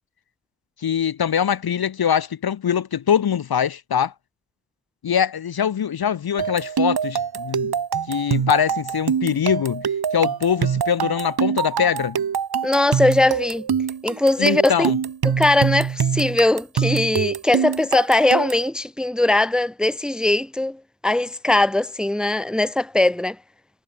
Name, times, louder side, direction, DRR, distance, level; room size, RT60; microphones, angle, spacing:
voice 1, 0.8-4.1 5.0-7.7 8.1-9.9 10.1-12.2 14.4-15.0, left 8 dB, 50° left, 0.7 m, -22 dB
sound 1, 6.4-18.7, right 7 dB, 50° right, 1.2 m, -24 dB
voice 2, 12.6-13.7 14.0-14.9 15.2-23.4, left 2 dB, ahead, 0.7 m, -20 dB
wide cardioid pair, 85°, 48 cm